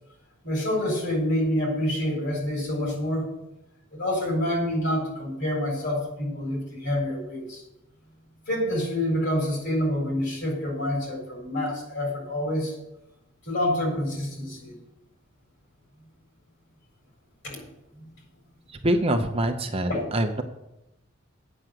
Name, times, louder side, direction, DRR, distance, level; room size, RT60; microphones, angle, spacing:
voice 1, 0.4-3.3 3.9-7.6 8.5-12.8 13.4-14.8 17.4-17.7 17.9-18.2 19.9-20.1, left 1 dB, 55° left, 0 dB, 4.2 m, -27 dB
voice 2, 18.8-20.4, right 1 dB, 25° right, 5 dB, 0.7 m, -24 dB
8.9 x 6.2 x 7.8 m, 0.92 s
head